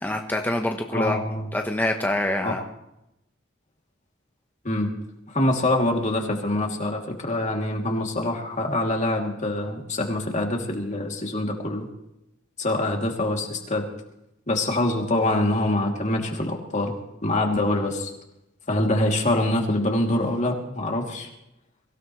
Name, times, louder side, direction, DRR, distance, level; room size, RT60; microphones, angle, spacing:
voice 1, 0.0-1.2 1.5-2.6, left 1 dB, 10° left, 3 dB, 1.0 m, -25 dB
voice 2, 0.9-1.5 2.4-2.5 4.6-4.9 5.3-11.9 12.6-13.8 14.5-16.9 17.2-18.1 18.7-21.3, left 1 dB, 35° left, 1 dB, 2.9 m, -25 dB
24.0 x 17.0 x 3.2 m, 0.86 s
head